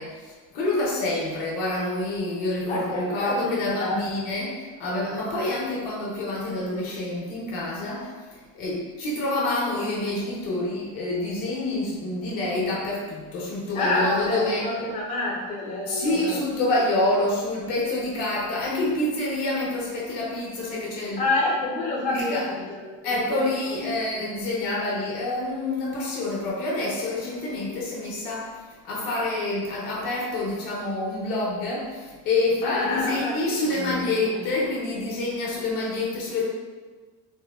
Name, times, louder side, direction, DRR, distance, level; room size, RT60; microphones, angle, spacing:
voice 1, 0.0-14.7 15.8-21.3 22.1-22.5 23.0-28.5 28.8-36.5, left 2 dB, 65° left, -4 dB, 1.0 m, -27 dB
voice 2, 2.6-4.0 13.7-16.4 21.2-22.8 23.3-23.4 24.1-24.2 32.6-33.3 33.8-34.0 34.3-34.5, left 2 dB, 20° left, -3 dB, 0.4 m, -27 dB
3.5 x 2.1 x 2.3 m, 1.4 s
supercardioid pair, 110°, 37 cm